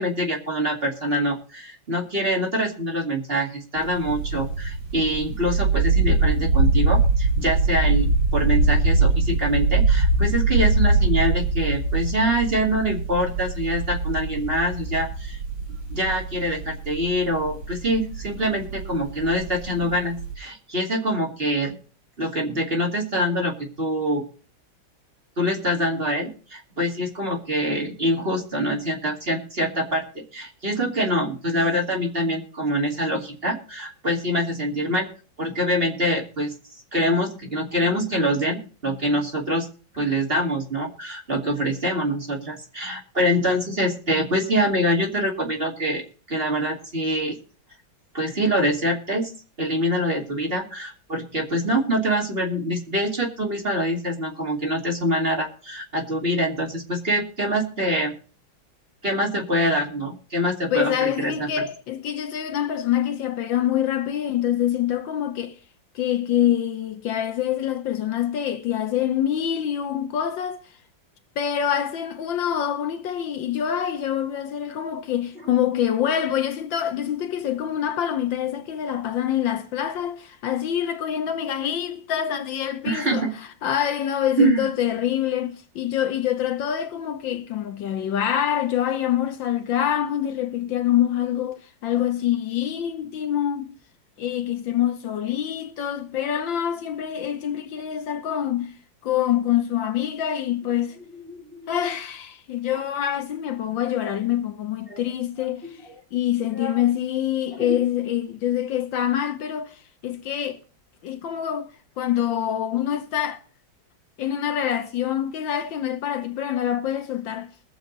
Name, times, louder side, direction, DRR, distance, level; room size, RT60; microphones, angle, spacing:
voice 1, 0.0-15.4 15.9-21.8 22.2-24.2 25.4-35.1 35.4-36.5 36.9-39.7 39.9-46.0 46.3-47.4 48.1-49.3 49.6-58.1 59.0-61.6 82.8-83.3 84.4-84.6 101.1-101.7 104.9-105.0 105.6-105.9 106.5-106.8 107.6-107.8, equal, 30° right, 2.5 m, -25 dB
sound 1, 3.8-20.3, right 3 dB, 85° right, 6.6 m, -23 dB
voice 2, 60.7-65.5 65.9-70.6 71.4-83.3 83.6-93.8 94.2-98.7 99.0-100.9 101.7-105.6 106.1-109.7 110.0-110.6 111.0-111.7 112.0-113.4 114.2-117.5, left 10 dB, 75° left, 1.7 m, -25 dB
21.5 x 7.2 x 4.0 m
omnidirectional pair, 2.1 m